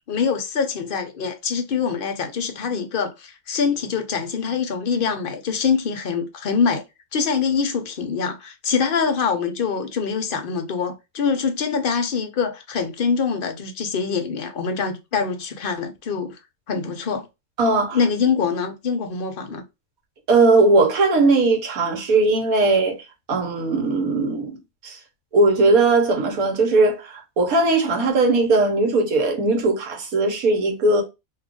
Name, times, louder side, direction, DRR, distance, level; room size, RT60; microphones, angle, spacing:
voice 1, 0.1-6.8 7.1-16.4 16.7-17.3 17.9-19.6, left 6 dB, 55° left, 0.6 m, -24 dB
voice 2, 17.6-18.0 20.3-22.9 23.3-24.6 24.8-25.0 25.3-31.0, right 3 dB, 85° right, 1.4 m, -19 dB
2.8 x 2.4 x 3.6 m
omnidirectional pair, 1.5 m